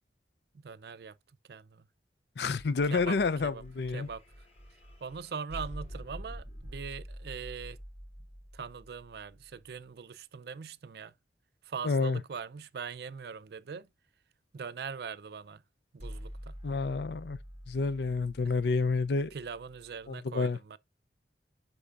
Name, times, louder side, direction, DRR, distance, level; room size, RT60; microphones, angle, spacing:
voice 1, 0.5-1.1 1.5-1.8 2.9-3.6 3.9-4.2 5.0-7.8 8.5-11.1 11.6-13.9 14.5-15.6 15.9-16.6 18.4-18.5 19.3-20.8, right 6 dB, 60° right, 0.4 m, -41 dB
voice 2, 2.4-4.1 11.8-12.2 16.6-17.4 17.7-19.3 20.1-20.6, left 4 dB, 70° left, 0.5 m, -29 dB
sound 1, 2.6-9.7 16.0-20.1, equal, 35° left, 2.0 m, -47 dB
8.3 x 5.9 x 2.4 m
head